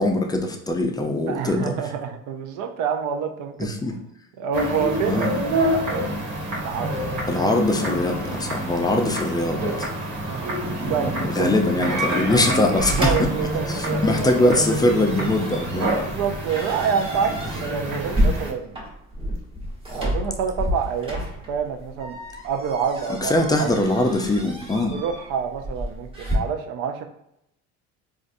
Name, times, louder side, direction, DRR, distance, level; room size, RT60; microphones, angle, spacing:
voice 1, 0.0-1.7 3.6-3.9 5.1-5.4 7.3-9.9 11.4-13.3 13.7-15.9 23.2-25.0, left 2 dB, 15° left, 3 dB, 0.3 m, -22 dB
voice 2, 1.3-3.7 4.4-6.9 10.2-11.5 12.9-14.0 16.0-18.8 19.9-22.2 22.4-23.7 24.9-27.1, right 7 dB, 75° right, 6 dB, 0.6 m, -28 dB
sound 1, 4.5-18.5, right 1 dB, 60° right, 1.4 m, -27 dB
sound 2, 12.8-26.4, equal, 15° right, 1.0 m, -30 dB
3.9 x 2.4 x 2.5 m, 0.80 s
cardioid pair, 120°, 32 cm